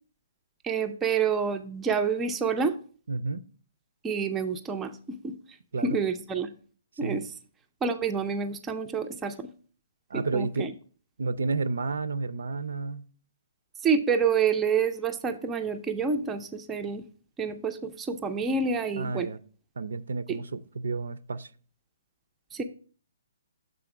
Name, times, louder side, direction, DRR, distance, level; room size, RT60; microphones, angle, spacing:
voice 1, 0.6-2.7 4.0-5.4 5.8-6.5 7.0-7.2 7.8-9.5 10.1-10.7 13.8-17.0 17.4-19.3 20.3-20.4 22.5-22.6, right 5 dB, 10° right, 0.3 m, -28 dB
voice 2, 3.1-3.4 5.7-6.0 7.0-7.2 10.1-10.7 11.2-13.1 19.0-19.4 19.8-21.5, right 4 dB, 90° right, 0.5 m, -31 dB
6.9 x 3.7 x 4.8 m
hypercardioid pair, 170°, 0 cm